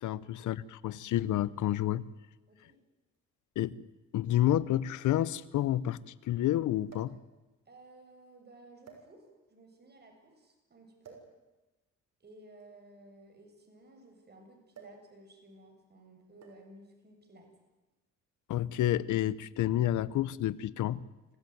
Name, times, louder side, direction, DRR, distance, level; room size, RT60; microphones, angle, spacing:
voice 1, 0.0-2.0 3.6-3.8 4.1-7.2 18.5-21.0, left 13 dB, 80° left, 19 dB, 1.0 m, -29 dB
voice 2, 2.5-2.8 7.7-11.2 12.2-17.5, right 1 dB, 35° right, 3 dB, 7.2 m, -56 dB
sound 1, 3.1-3.2 4.3-4.4 4.7-4.8 6.9-7.3 8.1-8.3 8.8-9.5 11.0-11.4 12.5-14.1 14.7-15.1 15.4-15.6 16.4-16.8 17.7-18.0, right 5 dB, 60° right, 6.2 m, -55 dB
26.5 x 16.0 x 9.5 m, 1.1 s
cardioid pair, 90°, 30 cm